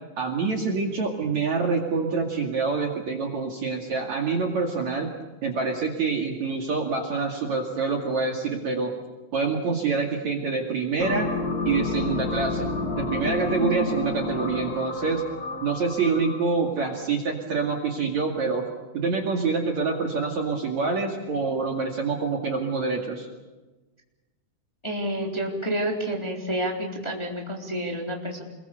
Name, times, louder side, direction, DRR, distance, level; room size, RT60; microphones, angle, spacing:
voice 1, 0.2-5.1 5.4-8.9 9.3-11.3 11.6-15.2 15.6-18.7 18.9-23.3, right 4 dB, 50° right, 2 dB, 3.2 m, -26 dB
sound 1, 11.0-16.6, left 3 dB, 85° left, 0.8 m, -30 dB
voice 2, 24.8-28.4, right 1 dB, 5° left, 0 dB, 3.3 m, -29 dB
28.0 x 22.0 x 6.9 m, 1.2 s
omnidirectional pair, 4.8 m